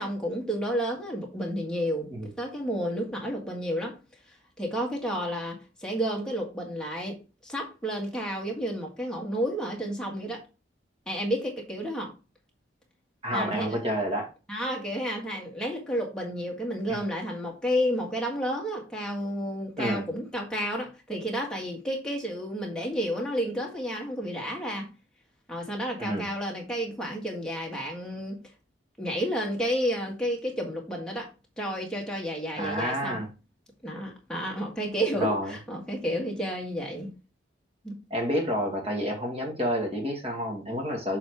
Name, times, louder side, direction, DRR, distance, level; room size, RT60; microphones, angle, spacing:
voice 1, 0.0-2.1 2.4-4.0 4.6-10.4 11.1-12.1 13.3-13.8 14.5-24.9 25.5-28.4 29.0-31.3 31.6-33.3 33.8-37.1 37.8-38.0, equal, 5° left, 1.7 m, -31 dB
voice 2, 13.2-14.3 16.9-17.0 19.8-20.1 26.0-26.3 32.6-33.3 35.2-35.5 38.1-41.2, equal, 30° right, 1.9 m, -29 dB
6.7 x 4.1 x 4.7 m
head